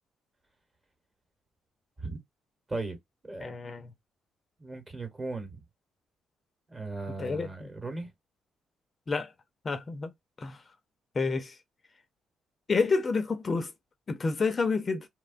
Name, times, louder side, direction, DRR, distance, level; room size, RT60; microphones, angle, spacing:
voice 1, 3.4-3.9 7.2-7.7 9.1-9.3 9.6-10.1 10.4-10.6 11.2-11.5 12.7-13.7 14.1-15.1, left 4 dB, 35° left, 0.4 m, -29 dB
voice 2, 4.6-5.6 6.7-8.1, right 3 dB, 25° right, 1.0 m, -37 dB
2.8 x 2.2 x 2.4 m
cardioid pair, 90°, 0 cm